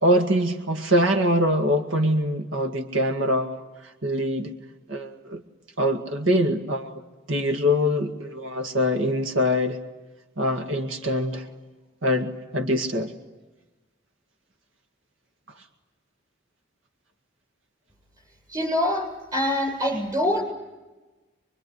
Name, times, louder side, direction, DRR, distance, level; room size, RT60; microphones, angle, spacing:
voice 1, 0.0-4.5 4.9-5.4 5.8-9.8 10.4-11.5 12.0-13.1, equal, 90° right, 5 dB, 2.1 m, -24 dB
voice 2, 18.5-19.1 19.3-20.4, left 1 dB, 20° right, 1 dB, 7.8 m, -24 dB
25.5 x 23.5 x 9.7 m, 1.1 s
head